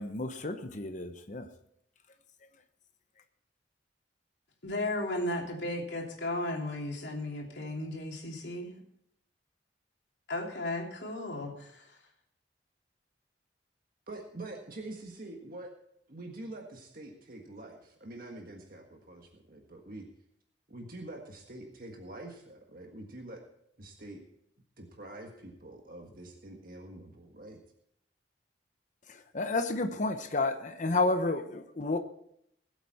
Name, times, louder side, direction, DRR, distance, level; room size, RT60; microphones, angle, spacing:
voice 1, 0.0-1.5 29.1-32.0, left 2 dB, 45° left, 7 dB, 0.9 m, -31 dB
voice 2, 4.6-8.8 10.3-11.8, left 1 dB, 75° left, 0 dB, 2.9 m, -35 dB
voice 3, 14.1-15.7 16.1-20.1 20.7-23.4 23.8-24.2 24.8-27.6, right 2 dB, 55° right, 2 dB, 1.6 m, -45 dB
20.0 x 8.2 x 4.2 m, 0.72 s
head